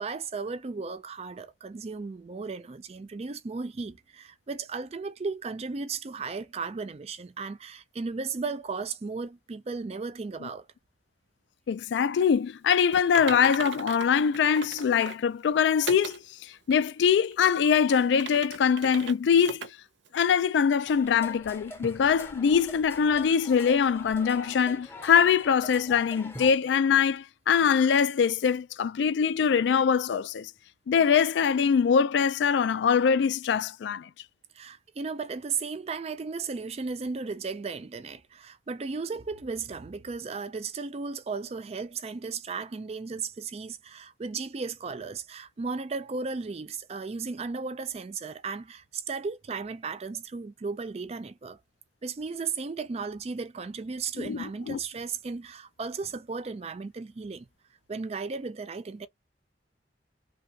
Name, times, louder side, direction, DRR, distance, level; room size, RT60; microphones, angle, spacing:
voice 1, 0.0-10.7 34.5-51.6 52.0-57.5 57.9-59.1, right 4 dB, 35° right, 0.4 m, -35 dB
voice 2, 11.7-19.7 20.1-30.5 30.9-34.1 54.2-54.8, left 7 dB, 75° left, 0.3 m, -23 dB
Typing, 12.9-15.3 15.9-16.2 16.7-16.8 17.3-19.1 19.4-19.7 20.0-20.1 20.7-20.8, right 5 dB, 85° right, 0.6 m, -39 dB
sound 1, 20.9-26.5, left 1 dB, 15° left, 0.7 m, -44 dB
3.2 x 2.3 x 2.7 m
head